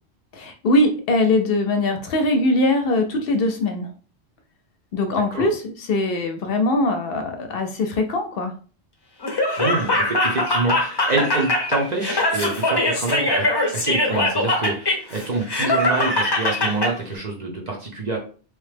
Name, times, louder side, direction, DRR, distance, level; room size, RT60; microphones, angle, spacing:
voice 1, 0.3-3.9 4.9-8.5, left 2 dB, 65° left, 5 dB, 0.7 m, -21 dB
Laughter, 9.2-16.9, left 1 dB, 30° left, 0.6 m, -22 dB
voice 2, 9.6-13.5 13.7-18.2, right 3 dB, 45° right, 0 dB, 0.7 m, -26 dB
3.1 x 2.1 x 3.2 m, 0.39 s
omnidirectional pair, 1.1 m